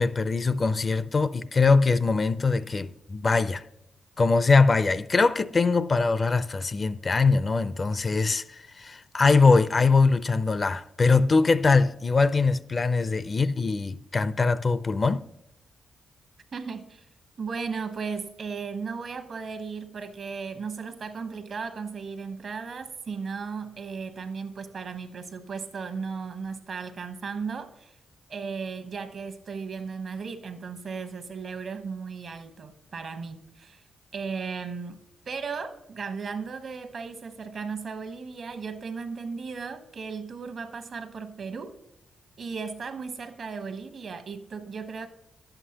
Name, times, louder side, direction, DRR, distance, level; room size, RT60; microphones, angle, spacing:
voice 1, 0.0-3.6 4.2-15.2, left 4 dB, 45° left, 0.4 m, -22 dB
voice 2, 16.5-17.0 17.4-28.0 28.3-33.8 34.1-41.8 42.4-45.1, right 5 dB, 65° right, 1.0 m, -36 dB
11.0 x 8.0 x 2.9 m
supercardioid pair, 50°, 0 cm